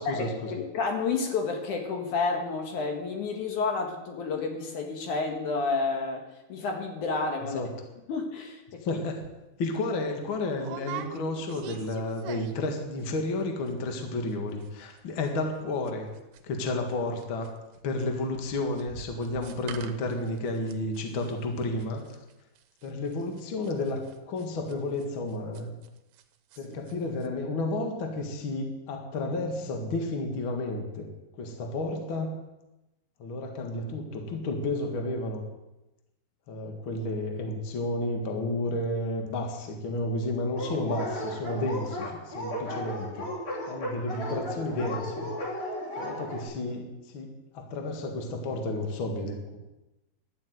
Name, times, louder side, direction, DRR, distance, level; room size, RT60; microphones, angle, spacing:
voice 1, 0.0-7.6 8.1-9.0, left 4 dB, 60° left, 3 dB, 2.2 m, -30 dB
voice 2, 8.8-9.2 9.6-16.1 16.4-17.5 17.8-22.0 22.8-24.0 24.3-25.7 26.6-31.1 31.4-32.3 33.2-35.4 36.5-43.3 43.7-45.3 46.0-46.8 47.1-49.6, left 2 dB, 80° left, 3 dB, 1.1 m, -31 dB
sound 1, 9.2-9.4 9.8-9.9 10.6-12.7 13.0-13.4 13.7-13.8 14.0-14.3 14.6-26.2 26.5-26.9 27.2-27.3, right 10 dB, 75° right, 2.8 m, -44 dB
Dog, 40.6-46.4, equal, 35° left, 3.1 m, -35 dB
12.5 x 9.0 x 9.3 m, 0.99 s
omnidirectional pair, 5.5 m